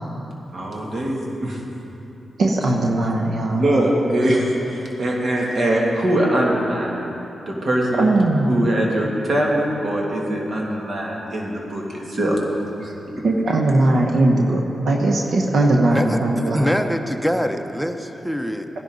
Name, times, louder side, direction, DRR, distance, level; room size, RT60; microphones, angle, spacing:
voice 1, 0.5-1.6 3.5-7.1 7.5-12.3 12.8-13.2, right 1 dB, 60° right, -2 dB, 2.5 m, -22 dB
voice 2, 2.4-3.6 8.0-8.5 13.2-16.7, right 2 dB, 75° right, 1 dB, 0.9 m, -19 dB
voice 3, 15.9-18.7, equal, 5° right, 7 dB, 0.9 m, -24 dB
15.5 x 11.0 x 4.0 m, 3.0 s
supercardioid pair, 45°, 0 cm